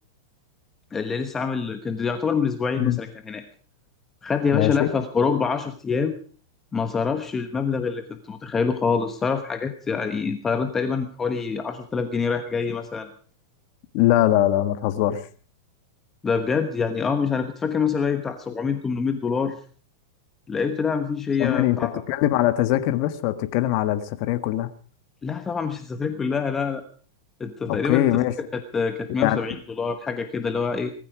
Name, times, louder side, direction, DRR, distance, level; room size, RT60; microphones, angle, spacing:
voice 1, 0.9-3.4 4.2-6.1 6.7-13.1 16.2-19.6 20.5-21.9 25.2-26.8 27.4-28.1 28.5-30.9, left 5 dB, 15° left, 8 dB, 1.2 m, -26 dB
voice 2, 4.5-4.9 13.9-15.2 21.4-24.7 27.7-28.3 29.2-29.5, left 14 dB, 50° left, 10 dB, 1.6 m, -22 dB
19.5 x 14.0 x 5.0 m, 0.42 s
supercardioid pair, 140°, 2 cm